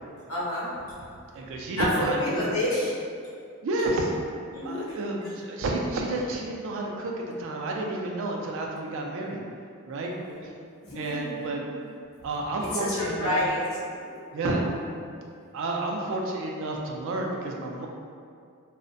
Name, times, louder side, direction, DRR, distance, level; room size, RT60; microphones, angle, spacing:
voice 1, 0.3-0.7 1.8-2.9 4.5-4.9 10.1-10.5 10.8-11.4 12.8-13.6, left 1 dB, 65° left, -8 dB, 0.7 m, -29 dB
voice 2, 1.3-2.4 3.6-4.1 4.6-7.1 7.4-9.4 9.9-10.1 10.9-11.8 12.2-13.3 14.3-14.6 15.5-17.9, right 2 dB, 60° right, 0 dB, 0.3 m, -30 dB
2.5 x 2.1 x 2.5 m, 2.3 s
head